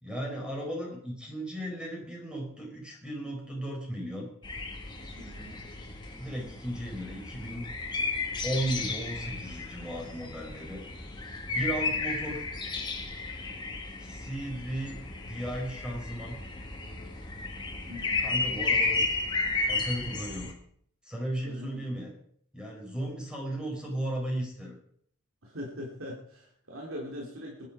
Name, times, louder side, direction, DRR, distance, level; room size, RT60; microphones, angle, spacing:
voice 1, 0.0-4.3 6.2-7.7 8.4-10.8 11.5-12.4 14.0-15.0 15.3-16.4 18.2-19.1 19.7-20.5 21.0-22.1 22.5-24.8, right 1 dB, 5° right, -1 dB, 4.9 m, -35 dB
sound 1, 4.4-20.5, left 3 dB, 20° left, 2.3 m, -33 dB
voice 2, 5.2-5.6 17.9-18.2 21.4-21.8 25.4-27.7, equal, 75° right, -2 dB, 3.4 m, -41 dB
20.0 x 10.5 x 5.0 m, 0.62 s
head